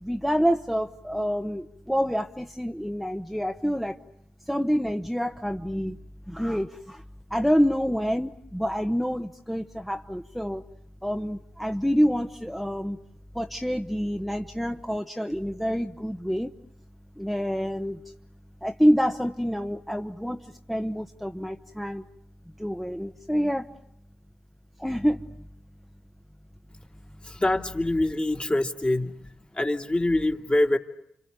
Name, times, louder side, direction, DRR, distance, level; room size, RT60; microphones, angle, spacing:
voice 1, 0.0-4.0 4.5-6.0 6.3-7.0 7.3-10.6 11.0-13.0 13.3-16.5 17.2-18.0 18.6-22.1 22.6-23.7 24.8-25.2, equal, ahead, 4 dB, 1.1 m, -27 dB
voice 2, 27.2-29.1 29.5-30.8, left 1 dB, 30° left, 3 dB, 2.5 m, -24 dB
30.0 x 26.5 x 6.9 m, 0.76 s
supercardioid pair, 45°, 4 cm